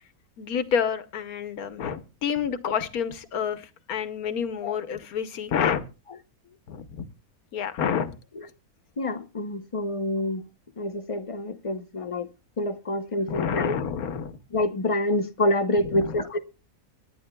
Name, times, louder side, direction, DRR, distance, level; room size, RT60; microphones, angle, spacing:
voice 1, 0.4-5.8 6.7-7.1 7.5-8.2 13.3-14.4 15.9-16.1, left 7 dB, 85° left, 1.4 m, -28 dB
voice 2, 9.0-10.5 10.8-12.3 12.6-13.8 14.5-16.4, left 1 dB, 40° left, 0.5 m, -27 dB
24.0 x 10.0 x 2.2 m
omnidirectional pair, 1.5 m